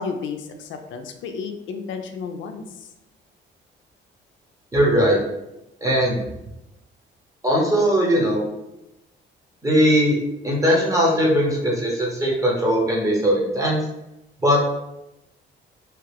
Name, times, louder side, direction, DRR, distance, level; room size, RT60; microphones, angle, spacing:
voice 1, 0.0-2.9, left 5 dB, 75° left, 5 dB, 0.4 m, -32 dB
voice 2, 4.7-5.2 5.8-6.2 7.4-8.4 9.6-10.1 10.4-13.8 14.4-14.6, equal, 15° right, -4 dB, 1.0 m, -19 dB
2.9 x 2.4 x 3.3 m, 0.90 s
cardioid pair, 90°, 20 cm